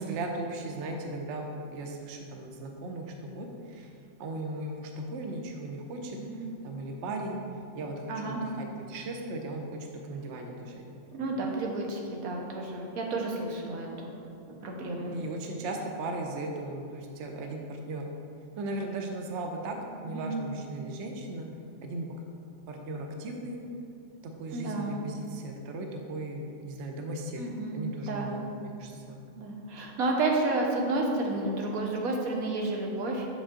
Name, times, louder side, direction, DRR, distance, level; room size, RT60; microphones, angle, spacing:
voice 1, 0.0-3.9 4.2-6.2 6.6-7.4 7.7-10.8 11.1-11.3 15.0-18.1 18.6-19.8 20.0-21.5 21.8-22.1 22.7-23.6 24.2-27.4 27.7-29.2, right 2 dB, 60° right, 2 dB, 0.9 m, -37 dB
voice 2, 8.1-8.4 11.1-14.1 14.6-15.1 20.1-20.3 24.5-25.0 27.4-27.8 28.1-28.3 29.3-33.3, right 2 dB, 90° right, 0 dB, 1.3 m, -31 dB
6.7 x 5.3 x 3.7 m, 2.5 s
omnidirectional pair, 1.5 m